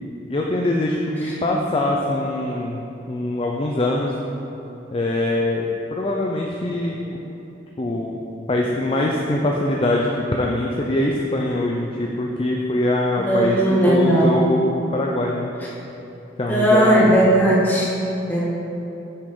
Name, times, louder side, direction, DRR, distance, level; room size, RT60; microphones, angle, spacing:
voice 1, 0.0-4.2 4.9-5.6 5.9-7.0 7.8-8.2 8.5-13.6 13.9-15.5 16.4-17.2, left 1 dB, 30° left, -1 dB, 0.5 m, -23 dB
voice 2, 13.2-14.4 16.5-17.9 18.3-18.4, right 1 dB, 10° left, -8 dB, 1.9 m, -17 dB
10.0 x 7.2 x 3.8 m, 3.0 s
head